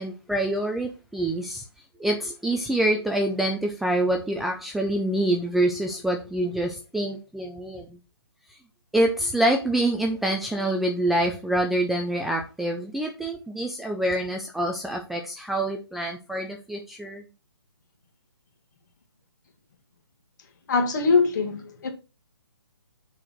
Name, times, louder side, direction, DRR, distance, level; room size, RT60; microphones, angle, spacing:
voice 1, 0.0-1.6 2.0-7.9 8.9-17.2, right 1 dB, ahead, 0.4 m, -26 dB
voice 2, 20.7-21.9, left 4 dB, 45° left, 1.9 m, -22 dB
6.4 x 4.2 x 6.1 m
figure-of-eight pair, 145°, 13 cm